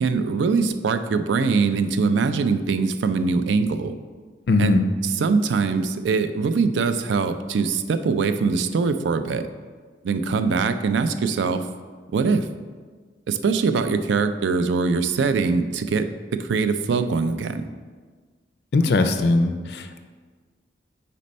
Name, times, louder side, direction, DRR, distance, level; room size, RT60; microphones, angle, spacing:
voice 1, 0.0-3.9 4.6-9.5 10.0-11.6 12.1-12.5 13.3-17.6, right 4 dB, 90° right, 10 dB, 0.4 m, -22 dB
voice 2, 4.5-4.8 18.7-20.0, left 3 dB, 65° left, 8 dB, 0.4 m, -20 dB
4.2 x 4.2 x 5.2 m, 1.5 s
head